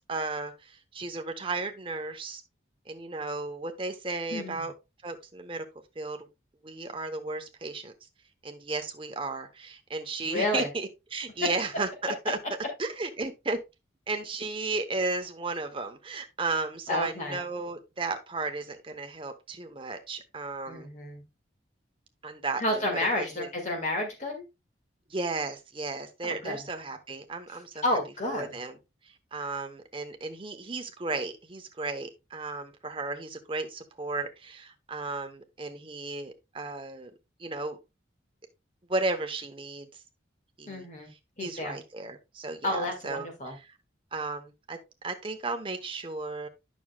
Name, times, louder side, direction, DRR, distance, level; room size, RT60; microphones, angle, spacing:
voice 1, 0.1-2.4 2.9-4.7 5.0-5.6 6.0-6.3 6.6-7.9 8.4-11.9 12.2-12.4 12.8-13.6 14.1-20.9 22.2-22.8 23.1-23.5 25.1-27.8 28.3-28.7 29.3-37.1 37.4-37.8 38.9-39.9 40.6-40.9 41.4-43.7 44.1-44.8 45.0-46.5, right 3 dB, 30° right, 0.8 m, -34 dB
voice 2, 10.2-10.7 16.9-17.4 20.7-21.2 22.6-24.4 26.2-26.6 27.8-28.6 40.7-41.1 41.4-41.8 42.6-43.6, left 1 dB, 40° left, 1.8 m, -30 dB
9.2 x 6.2 x 2.2 m
head